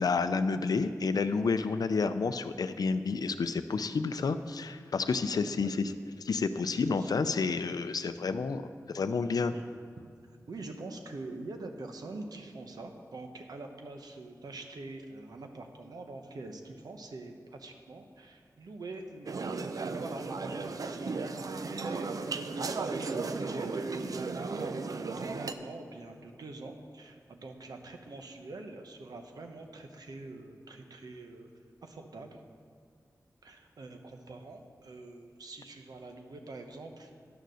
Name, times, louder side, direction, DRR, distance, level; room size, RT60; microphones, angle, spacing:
voice 1, 0.0-5.9 6.2-9.5, left 4 dB, 80° left, 11 dB, 0.5 m, -30 dB
voice 2, 6.7-7.3 9.5-9.6 10.0-31.5 31.8-32.4 33.4-37.1, right 2 dB, 90° right, 4 dB, 0.9 m, -44 dB
sound 1, 19.3-25.5, right 4 dB, 65° right, 0.5 m, -35 dB
10.0 x 6.7 x 6.3 m, 2.1 s
wide cardioid pair, 60°, 6 cm